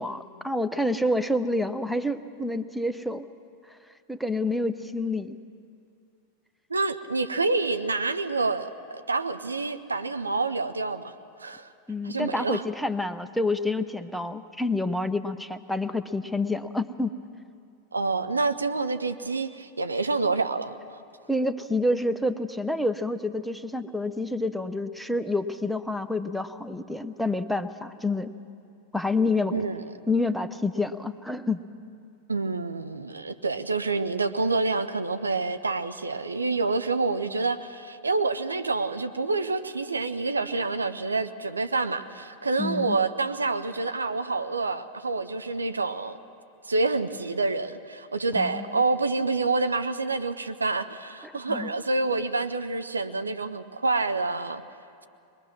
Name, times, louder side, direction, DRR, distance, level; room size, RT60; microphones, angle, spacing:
voice 1, 0.0-3.3 4.1-5.4 11.9-17.1 21.3-28.3 28.9-29.6 30.1-31.6 42.6-43.0 48.4-48.7 51.2-51.7, left 2 dB, ahead, 9 dB, 0.8 m, -28 dB
voice 2, 6.7-11.1 11.4-11.7 12.0-12.6 17.9-21.0 29.5-29.9 32.3-46.2 46.7-54.6, right 3 dB, 75° right, 10 dB, 0.8 m, -27 dB
22.0 x 21.0 x 6.2 m, 2.4 s
figure-of-eight pair, 90°, 0 cm